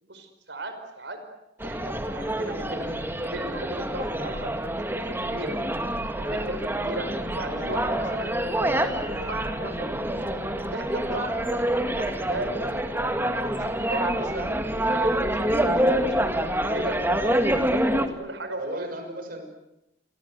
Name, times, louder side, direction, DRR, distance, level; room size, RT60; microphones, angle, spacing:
voice 1, 0.0-1.2 1.6-4.5 4.8-5.6 6.2-10.0 10.7-13.1 13.6-14.6 14.9-16.3 16.7-18.9, right 1 dB, 75° right, 8 dB, 5.3 m, -36 dB
sound 1, 1.6-18.1, right 1 dB, 10° right, 2.0 m, -27 dB
voice 2, 18.5-19.4, right 1 dB, 50° right, 6 dB, 6.3 m, -38 dB
29.5 x 24.0 x 8.1 m, 0.86 s
head